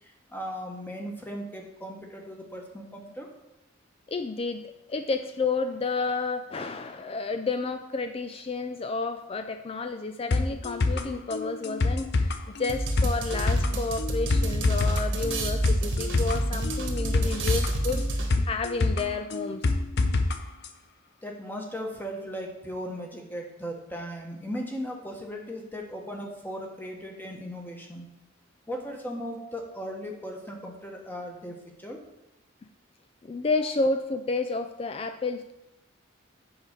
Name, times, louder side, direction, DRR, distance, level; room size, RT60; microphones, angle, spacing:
voice 1, 0.0-3.3 21.2-28.1 28.7-32.0, equal, 10° left, 1 dB, 1.2 m, -37 dB
voice 2, 4.1-19.6 33.2-35.5, left 3 dB, 30° left, 8 dB, 0.4 m, -31 dB
sound 1, 10.3-20.4 20.6-20.7, left 3 dB, 60° left, 0.7 m, -27 dB
sound 2, 12.7-18.6, right 1 dB, 70° right, 1.4 m, -29 dB
8.0 x 4.8 x 6.5 m, 0.92 s
head